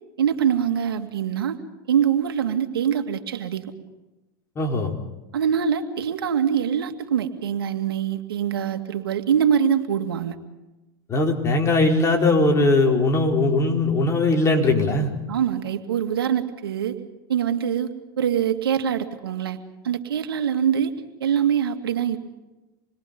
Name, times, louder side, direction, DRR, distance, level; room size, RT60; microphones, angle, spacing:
voice 1, 0.2-1.6 1.9-3.6 5.3-10.4 15.3-17.0 17.3-17.9 18.2-19.6 19.8-20.9 21.2-22.2, right 8 dB, 90° right, 6 dB, 2.4 m, -23 dB
voice 2, 4.6-4.9 11.1-15.1, left 2 dB, 25° left, 1 dB, 4.6 m, -20 dB
28.0 x 22.0 x 5.4 m, 1.0 s
hypercardioid pair, 115°, 12 cm